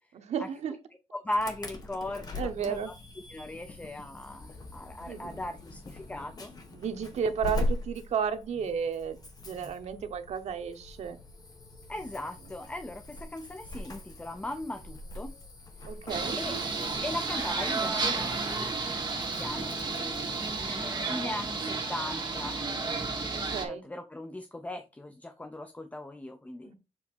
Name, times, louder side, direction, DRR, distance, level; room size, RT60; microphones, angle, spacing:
voice 1, 0.1-0.8 2.3-2.9 5.1-5.4 6.7-9.2 9.5-11.2 15.9-16.4 23.3-23.8 26.6-26.7, right 7 dB, 90° right, 0.9 m, -33 dB
voice 2, 1.1-2.9 3.3-6.5 11.9-15.3 16.3-16.5 17.0-22.6 23.7-26.7, left 1 dB, 15° left, 0.6 m, -38 dB
Insect / Alarm, 1.3-20.8, left 2 dB, 35° left, 1.4 m, -42 dB
sound 1, 16.1-23.7, right 4 dB, 40° right, 2.2 m, -32 dB
7.2 x 3.2 x 4.3 m
wide cardioid pair, 145°, 11 cm